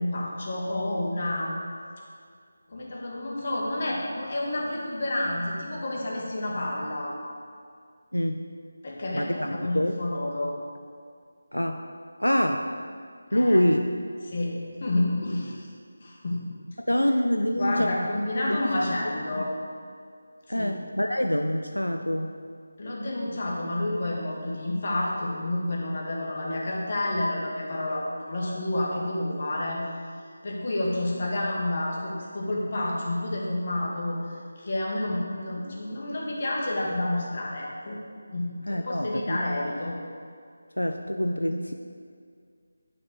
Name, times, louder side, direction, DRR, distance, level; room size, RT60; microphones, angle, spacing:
voice 1, 0.0-1.6 2.7-7.2 8.8-10.5 13.3-13.6 14.2-15.7 16.0-16.4 17.6-19.5 20.5-20.8 22.8-29.8 30.4-38.0 38.3-39.9, left 1 dB, 45° left, -3 dB, 1.9 m, -29 dB
voice 2, 8.1-8.5 9.1-10.0 11.5-11.8 12.2-12.7 13.3-13.8 16.9-18.0 18.5-18.9 19.4-19.5 20.5-22.3 38.7-39.4 40.8-41.7, equal, 90° left, 5 dB, 0.5 m, -25 dB
9.2 x 5.8 x 4.8 m, 2.1 s
figure-of-eight pair, 160°, 0 cm